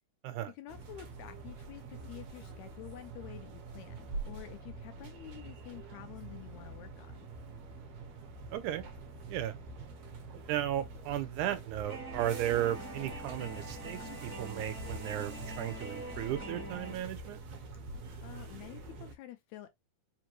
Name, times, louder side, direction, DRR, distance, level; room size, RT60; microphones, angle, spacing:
voice 1, 0.5-7.1 18.2-19.7, left 13 dB, 80° left, 1.7 m, -49 dB
sound 1, 0.7-19.1, right 3 dB, 60° right, 1.9 m, -46 dB
voice 2, 8.5-8.8 9.3-9.5 10.5-17.4, right 12 dB, 80° right, 2.0 m, -35 dB
sound 2, 11.9-17.0, right 1 dB, 20° left, 0.6 m, -44 dB
5.1 x 2.5 x 2.9 m
omnidirectional pair, 3.6 m